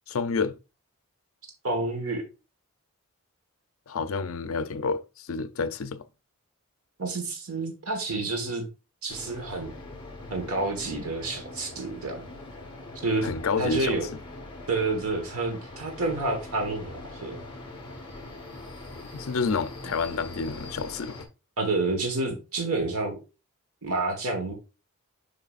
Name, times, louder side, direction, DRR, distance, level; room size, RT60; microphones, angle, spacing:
voice 1, 0.1-0.6 3.9-6.0 13.2-14.0 19.1-21.2, left 4 dB, 75° left, 0.5 m, -29 dB
voice 2, 1.6-2.2 7.0-8.7 9.0-9.7 10.3-12.2 13.0-13.3 13.6-14.1 14.7-17.4 21.6-23.2 23.8-24.5, right 3 dB, 80° right, 1.4 m, -29 dB
sound 1, 9.1-21.2, left 2 dB, 20° left, 1.5 m, -42 dB
6.6 x 5.9 x 2.4 m
head